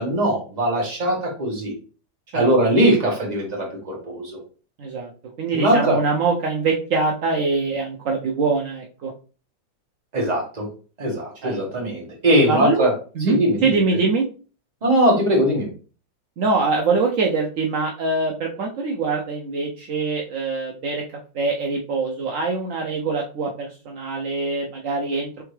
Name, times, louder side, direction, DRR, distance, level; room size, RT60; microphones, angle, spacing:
voice 1, 0.0-1.7 2.3-4.4 5.5-6.0 10.1-10.6 11.0-12.9 13.3-13.7 14.8-15.7, right 1 dB, 25° right, -1 dB, 1.1 m, -20 dB
voice 2, 4.8-5.1 5.4-9.1 11.4-11.9 12.5-12.9 13.1-14.3 16.4-21.0 21.3-25.4, right 4 dB, 75° right, 0 dB, 0.7 m, -23 dB
3.6 x 3.4 x 3.2 m, 0.36 s
omnidirectional pair, 2.1 m